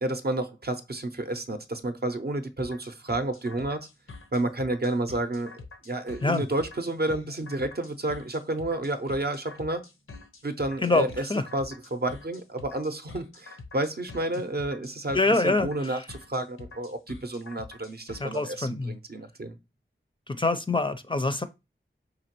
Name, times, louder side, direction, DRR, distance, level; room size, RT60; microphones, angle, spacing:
voice 1, 0.0-3.9 4.3-5.5 5.8-9.9 10.4-19.6, right 2 dB, 50° right, 0.6 m, -30 dB
sound 1, 2.6-18.4, left 3 dB, 85° left, 0.6 m, -46 dB
voice 2, 10.8-11.4 15.1-16.0 18.2-18.9 20.3-21.4, left 2 dB, 25° left, 0.4 m, -25 dB
5.0 x 2.8 x 2.9 m
wide cardioid pair, 45°, 21 cm